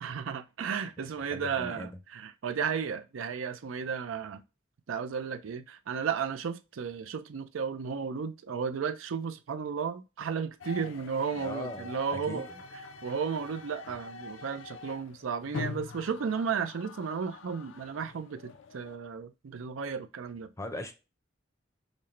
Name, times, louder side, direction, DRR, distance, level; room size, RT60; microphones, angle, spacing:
voice 1, 0.0-4.4 4.9-12.4 13.0-20.5, right 6 dB, 75° right, 0.4 m, -34 dB
voice 2, 1.2-2.0 10.8-10.9 11.3-12.6 20.6-20.9, left 1 dB, 15° left, 0.5 m, -40 dB
sound 1, 10.6-19.0, left 4 dB, 65° left, 0.4 m, -44 dB
5.1 x 2.1 x 2.9 m
head